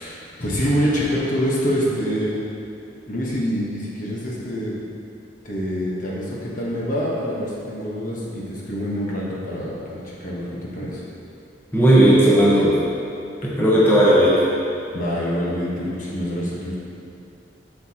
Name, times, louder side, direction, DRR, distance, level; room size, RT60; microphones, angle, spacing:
voice 1, 0.0-2.4 3.1-4.7 5.4-11.0 14.9-16.8, equal, 45° left, -5 dB, 1.2 m, -26 dB
voice 2, 11.7-12.8 13.4-14.4, right 1 dB, 10° left, -8 dB, 1.1 m, -15 dB
7.9 x 6.8 x 2.9 m, 2.7 s
head